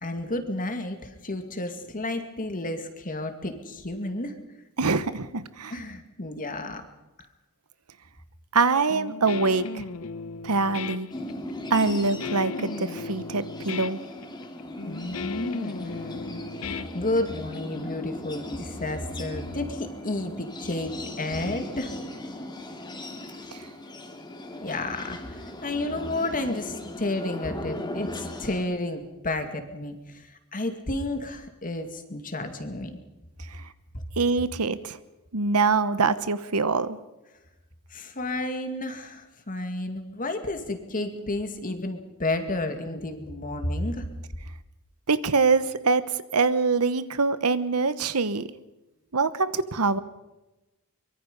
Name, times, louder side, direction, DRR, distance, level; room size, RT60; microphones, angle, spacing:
voice 1, 0.0-4.3 5.7-6.8 14.8-16.4 16.9-21.9 24.6-33.0 33.9-34.0 37.9-44.1, left 2 dB, 40° left, 7 dB, 2.2 m, -31 dB
voice 2, 4.8-5.7 8.5-9.9 10.4-11.1 11.7-14.0 23.5-23.6 33.5-33.6 34.2-35.0 35.3-37.0 45.1-46.0 46.3-48.5 49.1-50.0, right 4 dB, 90° right, 14 dB, 1.1 m, -24 dB
Guitar, 8.9-17.5, left 4 dB, 70° left, 0.8 m, -36 dB
sound 1, 11.1-28.6, left 1 dB, 20° left, 2.4 m, -38 dB
24.0 x 22.5 x 5.4 m, 1.0 s
head